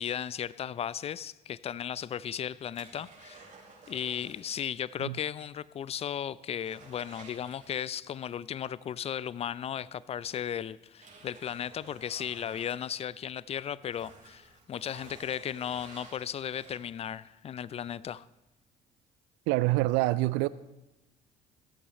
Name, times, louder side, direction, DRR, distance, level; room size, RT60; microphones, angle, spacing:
voice 1, 0.0-3.5 3.9-18.3, left 9 dB, 30° left, 0.4 m, -36 dB
sound 1, 1.8-4.8 5.1-5.2 5.7-5.8 6.1-8.2 9.6-9.7 10.3-13.4 13.8-17.1 17.6-17.7, right 3 dB, 40° right, 4.2 m, -53 dB
voice 2, 19.5-20.5, right 19 dB, 60° right, 0.4 m, -26 dB
16.0 x 13.5 x 3.2 m
figure-of-eight pair, 50°, 21 cm